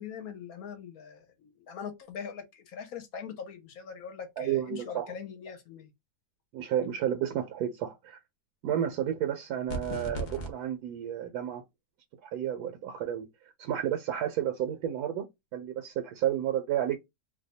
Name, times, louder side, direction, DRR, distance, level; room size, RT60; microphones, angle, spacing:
voice 1, 0.0-5.9, left 7 dB, 70° left, 1.1 m, -42 dB
voice 2, 4.4-5.1 6.5-8.2 8.6-11.6 12.2-13.3 13.6-15.2 15.5-17.0, right 10 dB, 80° right, 1.1 m, -31 dB
sound 1, 9.7-10.5, right 1 dB, 45° left, 0.6 m, -36 dB
2.7 x 2.2 x 4.0 m
omnidirectional pair, 1.6 m